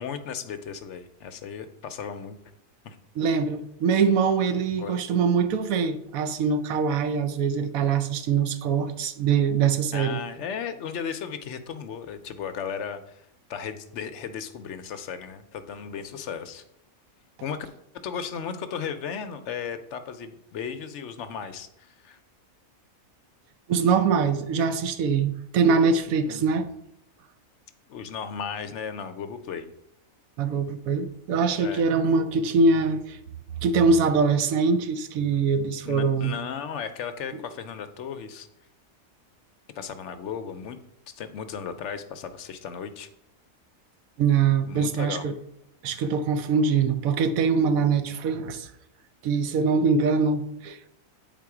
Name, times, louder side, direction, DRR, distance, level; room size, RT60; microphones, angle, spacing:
voice 1, 0.0-2.4 2.8-3.0 4.8-5.0 9.9-16.6 17.4-17.7 17.9-22.2 26.3-26.5 27.9-29.7 31.6-31.9 35.8-38.5 39.8-40.8 41.1-43.1 44.7-45.2, left 7 dB, 65° left, 0.8 m, -35 dB
voice 2, 3.2-10.2 23.7-26.7 30.4-33.2 33.6-36.3 44.2-45.3 45.8-48.7 49.2-50.9, right 5 dB, 80° right, 1.0 m, -23 dB
8.2 x 3.8 x 4.7 m
omnidirectional pair, 1.5 m